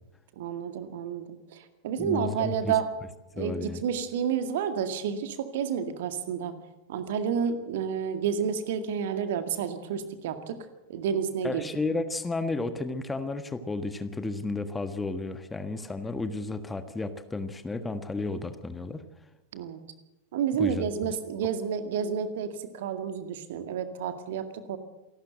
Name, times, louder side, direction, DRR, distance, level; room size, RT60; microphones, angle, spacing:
voice 1, 0.4-2.9 3.4-6.5 6.9-10.6 10.9-11.7 19.5-19.8 20.3-24.8, right 7 dB, 55° right, 9 dB, 2.0 m, -30 dB
voice 2, 2.0-2.8 3.4-3.8 11.4-19.0 20.6-20.9, left 3 dB, 10° left, 9 dB, 1.4 m, -32 dB
27.0 x 12.5 x 7.9 m, 1.0 s
figure-of-eight pair, 90°, 0 cm